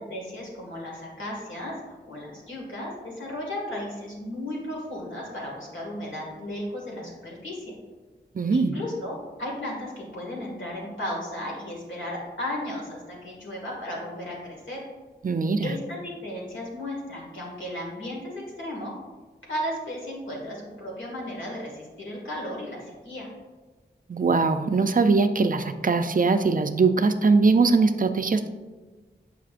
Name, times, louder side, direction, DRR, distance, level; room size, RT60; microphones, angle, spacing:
voice 1, 0.1-7.7 8.5-14.8 15.6-18.9 19.5-23.3, left 1 dB, 90° left, -3 dB, 1.9 m, -35 dB
voice 2, 8.3-8.8 15.2-15.7 24.1-28.5, right 4 dB, 45° right, 9 dB, 0.4 m, -21 dB
7.3 x 5.6 x 2.5 m, 1.3 s
wide cardioid pair, 80°, 19 cm